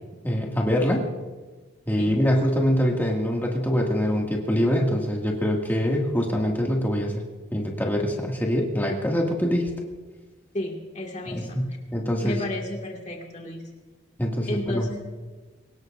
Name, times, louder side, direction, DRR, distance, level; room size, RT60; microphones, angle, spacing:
voice 1, 0.2-1.0 1.9-7.2 7.5-9.7 11.3-12.4 14.2-14.9, equal, 10° left, -1 dB, 2.2 m, -24 dB
voice 2, 10.5-11.6 12.2-13.7 14.5-15.0, left 1 dB, 35° left, 0 dB, 2.1 m, -32 dB
23.0 x 19.5 x 2.6 m, 1.3 s
head